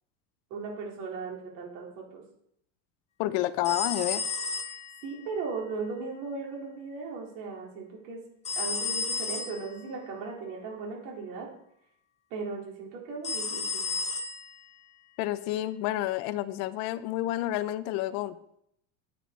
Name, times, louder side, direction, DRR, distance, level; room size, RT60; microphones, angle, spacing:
voice 1, 0.5-2.2 3.5-3.7 4.7-4.8 5.0-8.2 8.5-11.5 12.3-13.9, right 4 dB, 75° right, -2 dB, 4.1 m, -37 dB
voice 2, 3.2-4.2 15.2-18.3, left 14 dB, 65° left, 15 dB, 0.7 m, -29 dB
sound 1, 3.6-5.2 8.4-9.7 13.2-14.6, left 4 dB, 20° left, 0.8 m, -32 dB
9.5 x 9.1 x 4.1 m, 0.72 s
cardioid pair, 150°, 38 cm